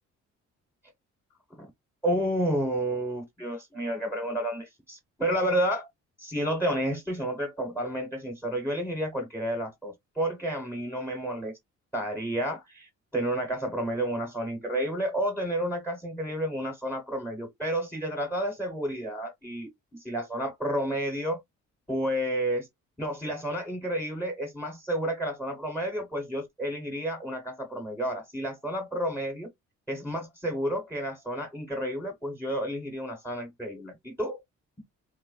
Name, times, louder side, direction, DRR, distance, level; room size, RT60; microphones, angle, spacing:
voice 1, 2.0-5.9 6.2-11.6 11.9-21.4 21.9-22.7 23.0-29.5 29.9-34.4, right 1 dB, 5° left, 1.0 m, -31 dB
3.5 x 2.1 x 2.3 m
cardioid pair, 90°, 30 cm